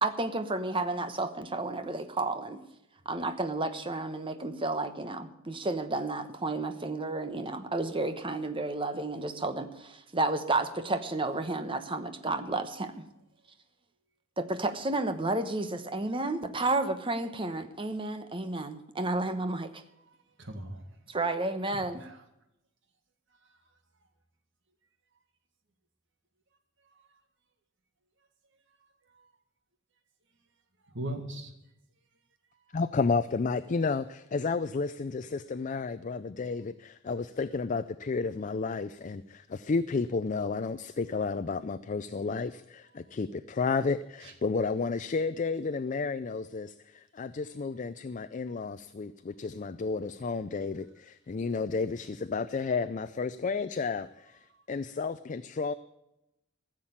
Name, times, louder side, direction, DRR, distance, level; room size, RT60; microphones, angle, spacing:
voice 1, 0.0-2.6 3.0-13.0 14.4-19.8 21.1-22.0, right 2 dB, 25° right, 9 dB, 1.0 m, -31 dB
voice 2, 20.4-20.9 21.7-22.2 30.9-31.5 44.2-44.4, right 1 dB, 60° right, 6 dB, 2.0 m, -39 dB
voice 3, 32.7-55.7, left 4 dB, 35° left, 13 dB, 0.4 m, -32 dB
15.0 x 7.5 x 8.7 m, 0.87 s
head